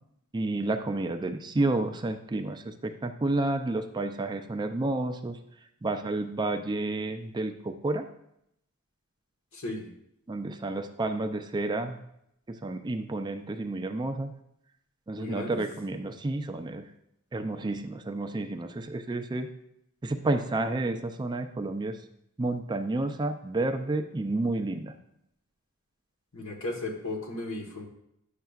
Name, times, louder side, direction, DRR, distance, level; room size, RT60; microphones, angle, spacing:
voice 1, 0.3-5.4 5.8-8.0 10.3-12.0 12.5-14.3 15.1-16.8 17.3-19.5 20.0-22.0 22.4-24.9, right 2 dB, 20° right, 7 dB, 0.4 m, -30 dB
voice 2, 9.5-9.9 15.2-15.6 26.3-27.9, left 2 dB, 70° left, 0 dB, 1.3 m, -35 dB
10.0 x 6.6 x 2.4 m, 0.76 s
head